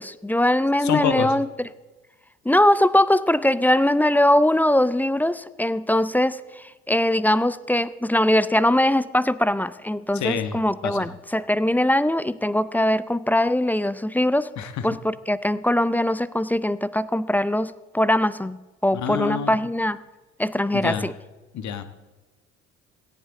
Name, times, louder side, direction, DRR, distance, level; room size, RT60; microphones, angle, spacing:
voice 1, 0.0-1.5 2.4-14.5 14.8-20.0 20.4-21.1, left 1 dB, 5° left, 17 dB, 0.5 m, -21 dB
voice 2, 0.8-1.4 10.1-11.1 14.6-14.9 18.9-19.6 20.7-21.1 21.5-21.8, left 7 dB, 45° left, 10 dB, 1.4 m, -27 dB
17.5 x 14.0 x 3.8 m, 1.2 s
figure-of-eight pair, 55°, 38 cm